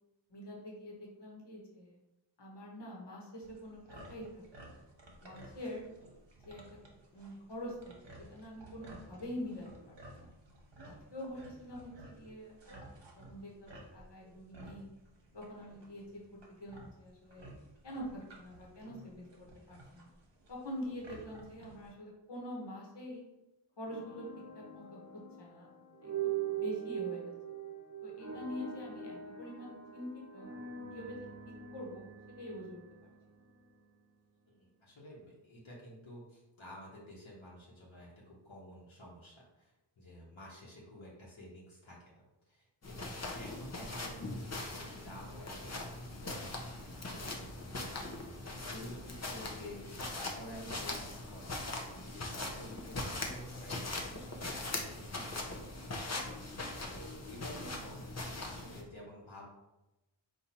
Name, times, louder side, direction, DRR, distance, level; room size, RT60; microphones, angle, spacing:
voice 1, 0.3-2.0 2.4-4.7 5.2-5.8 6.4-6.6 7.1-7.8 8.0-10.3 10.8-12.9 13.2-14.9 15.3-16.0 16.6-17.4 17.8-19.3 19.7-20.1 20.5-23.2 23.8-24.2 24.5-25.0 25.4-25.7 26.0-27.3 28.0-30.5 30.9-31.2 31.7-32.0 32.4-32.8 48.5-48.7, left 1 dB, 60° left, -3 dB, 1.2 m, -45 dB
sound 1, 3.4-21.9, right 1 dB, 60° right, 1.0 m, -55 dB
sound 2, 23.8-33.9, right 9 dB, 35° right, 1.1 m, -42 dB
voice 2, 34.5-58.0 58.4-59.4, equal, 80° left, -4 dB, 1.1 m, -51 dB
sound 3, 42.8-58.8, left 2 dB, 35° left, 0.8 m, -41 dB
4.1 x 2.6 x 4.3 m, 0.97 s
wide cardioid pair, 55°, 47 cm